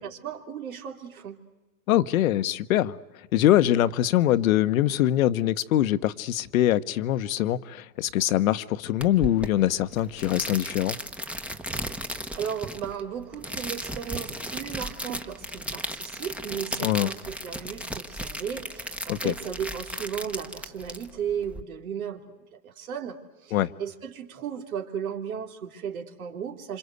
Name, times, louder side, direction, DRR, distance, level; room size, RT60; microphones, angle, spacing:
voice 1, 0.0-1.4 12.0-26.8, right 8 dB, 85° right, 3.7 m, -35 dB
voice 2, 1.9-3.0 3.3-11.0 16.8-17.1 19.1-19.3 23.5-23.7, left 13 dB, 75° left, 1.2 m, -23 dB
sound 1, 9.0-21.6, equal, 5° right, 1.1 m, -36 dB
27.0 x 26.5 x 8.1 m
supercardioid pair, 130°, 41 cm